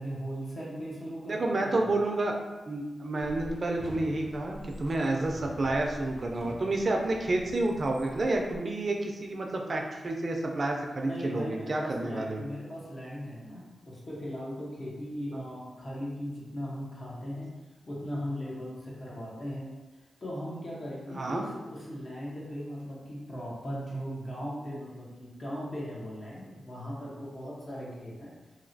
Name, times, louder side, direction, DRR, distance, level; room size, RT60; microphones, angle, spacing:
voice 1, 0.0-1.9 11.0-17.5 17.9-19.7 20.2-28.3, equal, 50° left, -5 dB, 1.0 m, -38 dB
voice 2, 1.3-2.3 2.7-12.4 15.3-15.4 21.2-21.4, right 2 dB, 55° right, 1 dB, 0.4 m, -30 dB
sound 1, 3.2-8.6, left 1 dB, ahead, 0.5 m, -46 dB
2.9 x 2.9 x 2.7 m, 1.2 s
cardioid pair, 60°, 0 cm